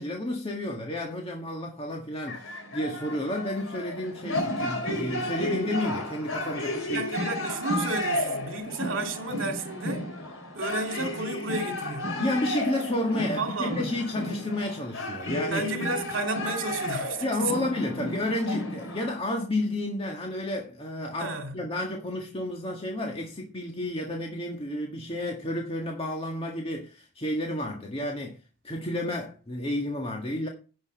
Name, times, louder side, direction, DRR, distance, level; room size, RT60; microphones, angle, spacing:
voice 1, 0.0-7.1 12.2-15.7 17.2-28.4 28.6-30.5, left 1 dB, 30° left, 1.7 m, -31 dB
sound 1, 2.3-19.2, left 1 dB, 85° left, 3.2 m, -33 dB
voice 2, 6.9-10.1 10.5-12.2 13.4-13.9 15.5-17.4 21.2-21.6, right 3 dB, 70° right, 2.4 m, -32 dB
10.5 x 6.2 x 7.5 m
head